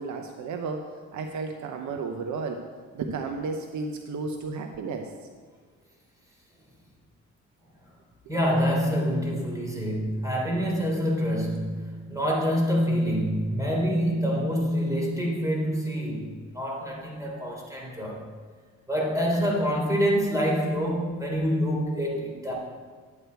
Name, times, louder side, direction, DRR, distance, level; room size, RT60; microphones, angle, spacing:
voice 1, 0.0-2.6 2.9-5.1, right 4 dB, 75° right, 4 dB, 0.9 m, -33 dB
voice 2, 8.3-18.2 18.9-22.5, equal, 10° right, -2 dB, 3.4 m, -26 dB
11.0 x 8.2 x 4.6 m, 1.5 s
cardioid pair, 90°, 30 cm